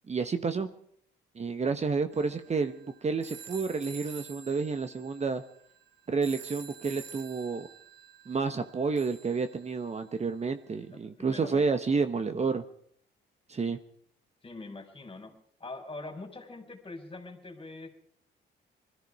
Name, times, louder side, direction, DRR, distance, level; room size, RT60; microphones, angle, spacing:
voice 1, 0.1-0.7 1.4-5.4 6.1-7.7 8.3-12.6 13.5-13.8, right 4 dB, 35° right, 9 dB, 1.2 m, -30 dB
sound 1, 2.1-10.2, right 7 dB, 65° right, 1.7 m, -49 dB
voice 2, 10.9-11.7 14.4-15.3 15.6-17.9, left 2 dB, 25° left, 5 dB, 4.5 m, -43 dB
21.0 x 14.0 x 4.8 m, 0.64 s
cardioid pair, 90°, 20 cm